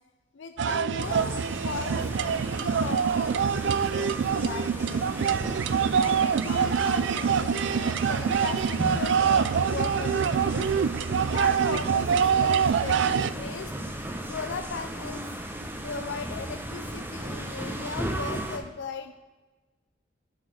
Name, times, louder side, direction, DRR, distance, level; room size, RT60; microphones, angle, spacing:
voice 1, 0.3-5.4 5.9-10.7 11.3-13.7 14.3-15.2 15.8-19.1, left 5 dB, 65° left, 8 dB, 0.5 m, -38 dB
sound 1, 0.6-13.3, right 7 dB, 65° right, 0.3 m, -25 dB
sound 2, 1.0-18.6, right 1 dB, 10° right, 0.9 m, -36 dB
9.5 x 6.3 x 4.9 m, 1.2 s
head